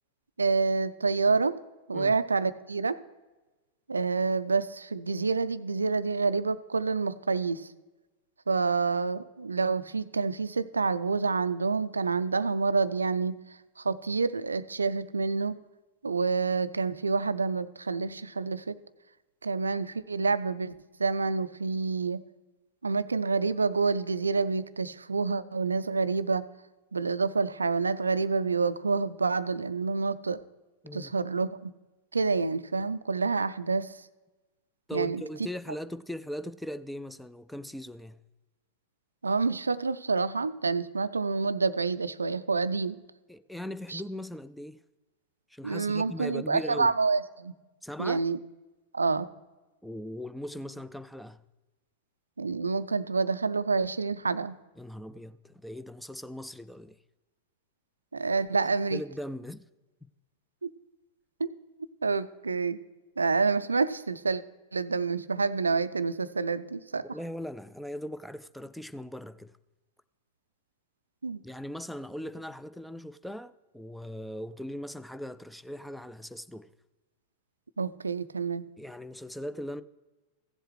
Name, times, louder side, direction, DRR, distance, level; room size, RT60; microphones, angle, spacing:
voice 1, 0.4-1.6 1.9-2.9 3.9-7.7 8.5-13.4 13.8-15.6 16.0-18.8 19.4-20.7 21.0-22.2 22.8-26.5 26.9-30.4 30.9-31.7 32.1-34.0 34.9-35.2 39.2-43.0 43.9-44.0 45.6-47.5 48.0-48.4 48.9-49.3 52.4-54.6 58.1-59.0 60.6-60.7 61.4-61.5 62.0-62.8 63.2-64.4 64.7-67.1 71.2-71.4 77.8-78.6, right 4 dB, 75° right, 0.3 m, -28 dB
voice 2, 34.9-38.2 43.3-44.8 45.5-46.9 47.8-48.2 49.8-51.4 54.8-57.0 58.9-59.6 67.1-69.5 71.4-76.7 78.8-79.8, equal, ahead, 0.3 m, -39 dB
15.5 x 7.8 x 3.2 m
figure-of-eight pair, 90°, 0 cm